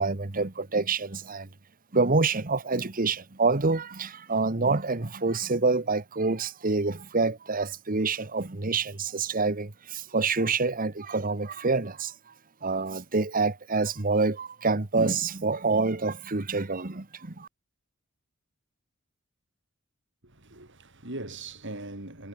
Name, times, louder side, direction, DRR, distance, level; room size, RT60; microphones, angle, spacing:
voice 1, 0.0-1.5 1.9-12.1 12.6-17.5, right 3 dB, 40° right, 1.3 m, -27 dB
voice 2, 20.2-22.3, right 2 dB, 60° right, 6.2 m, -40 dB
head